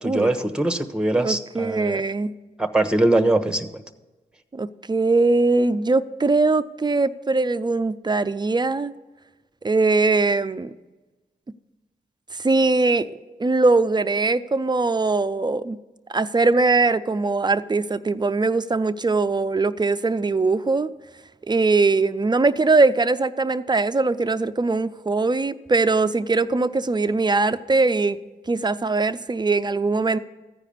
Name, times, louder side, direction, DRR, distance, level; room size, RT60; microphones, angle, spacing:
voice 1, 0.0-2.0 2.6-3.7, right 2 dB, 5° right, 8 dB, 1.1 m, -22 dB
voice 2, 1.1-2.3 4.5-8.9 9.6-10.7 12.3-13.1 13.4-15.8 16.1-20.9 21.5-28.2 28.5-30.2, right 3 dB, 25° right, 13 dB, 0.6 m, -21 dB
14.5 x 4.9 x 8.6 m, 1.2 s
supercardioid pair, 45°, 18 cm